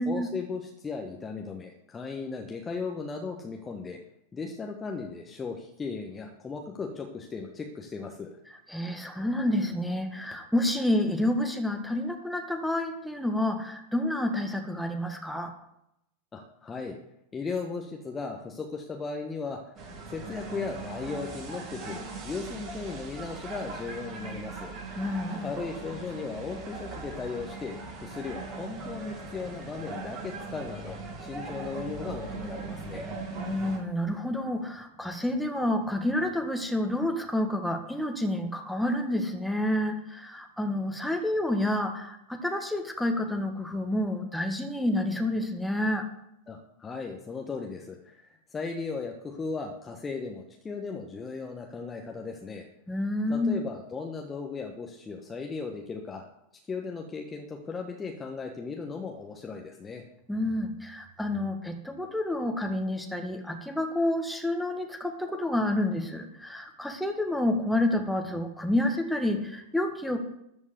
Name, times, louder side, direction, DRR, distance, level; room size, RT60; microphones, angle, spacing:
voice 1, 0.1-4.0 4.3-8.4 16.3-17.0 17.3-24.7 25.4-33.1 46.5-52.7 53.3-56.2 56.7-60.0, left 4 dB, 15° left, 2 dB, 1.3 m, -37 dB
voice 2, 8.7-15.5 25.0-25.5 33.3-46.1 52.9-53.6 60.3-70.2, left 1 dB, ahead, 4 dB, 1.7 m, -29 dB
sound 1, 19.8-33.8, right 3 dB, 35° right, 4.5 m, -39 dB
13.5 x 5.4 x 8.2 m, 0.80 s
figure-of-eight pair, 90°, 0 cm